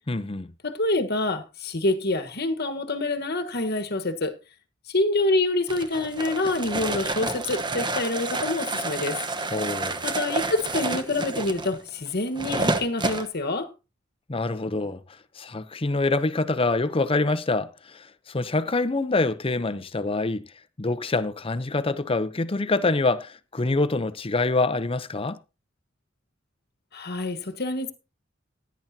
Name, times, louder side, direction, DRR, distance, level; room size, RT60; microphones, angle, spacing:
voice 1, 0.1-0.5 9.5-10.0 14.3-15.0 15.4-20.5 20.8-25.4, left 3 dB, 30° left, 0.7 m, -25 dB
voice 2, 0.6-4.3 4.9-9.2 10.0-13.7 26.9-27.9, left 2 dB, 55° left, 1.3 m, -26 dB
sound 1, 5.7-13.3, right 2 dB, 25° right, 1.0 m, -29 dB
16.5 x 10.5 x 2.8 m
head